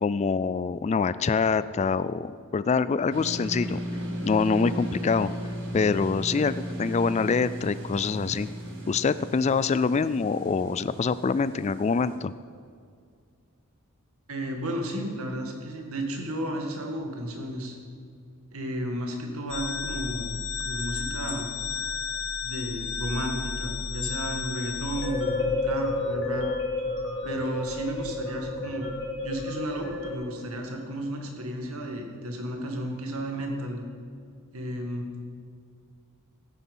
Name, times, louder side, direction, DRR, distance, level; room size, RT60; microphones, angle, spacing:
voice 1, 0.0-3.8 4.2-5.3 5.7-8.5 8.9-12.3, left 5 dB, 30° left, 15 dB, 0.3 m, -25 dB
sound 1, 3.1-12.2, equal, 60° right, 2.1 m, -36 dB
voice 2, 14.3-17.8 18.5-20.4 20.6-21.5 22.4-26.5 27.2-28.9 29.2-33.8 34.5-35.1, right 1 dB, 80° right, 2 dB, 2.1 m, -33 dB
sound 2, 19.5-30.1, left 3 dB, 55° left, 2.4 m, -31 dB
14.0 x 9.9 x 5.5 m, 2.2 s
head